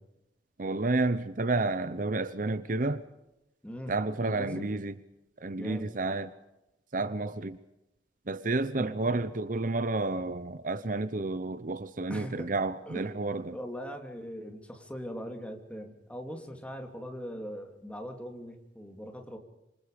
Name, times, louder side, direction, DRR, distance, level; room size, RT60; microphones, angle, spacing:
voice 1, 0.6-3.0 3.9-5.0 5.4-6.3 6.9-7.6 8.3-13.6, right 2 dB, 45° right, 0.8 m, -30 dB
voice 2, 3.6-4.7 5.6-5.9 8.8-9.0 12.1-12.5 12.9-19.4, equal, 5° left, 3.2 m, -41 dB
27.5 x 25.5 x 5.2 m
head